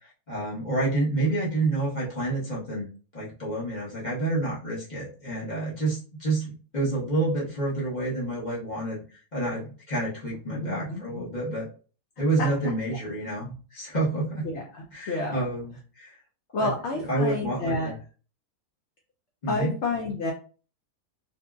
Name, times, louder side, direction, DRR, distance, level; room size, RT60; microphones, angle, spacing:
voice 1, 0.3-2.9 3.1-9.0 9.3-11.7 12.2-14.4 14.9-16.2 16.6-18.0 19.4-19.8, right 2 dB, 35° left, -7 dB, 1.0 m, -29 dB
voice 2, 10.5-11.2 14.4-15.4 16.5-17.9 19.5-20.3, left 3 dB, 65° left, 0 dB, 0.7 m, -30 dB
2.7 x 2.7 x 2.2 m, 0.38 s
omnidirectional pair, 1.6 m